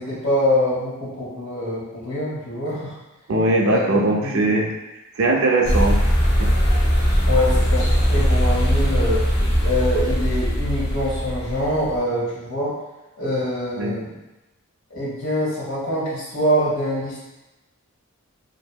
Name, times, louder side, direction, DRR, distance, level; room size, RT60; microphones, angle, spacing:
voice 1, 0.0-3.0 3.7-4.5 7.2-9.3 9.6-12.7 13.2-14.1 14.9-17.2, left 1 dB, 75° left, -8 dB, 1.1 m, -24 dB
voice 2, 3.3-4.7 5.2-6.1 6.4-6.5 13.8-14.0, right 2 dB, 65° right, 0 dB, 0.4 m, -20 dB
sound 1, 5.6-12.0, equal, 50° left, 0.7 m, -20 dB
2.7 x 2.5 x 2.2 m, 1.0 s
head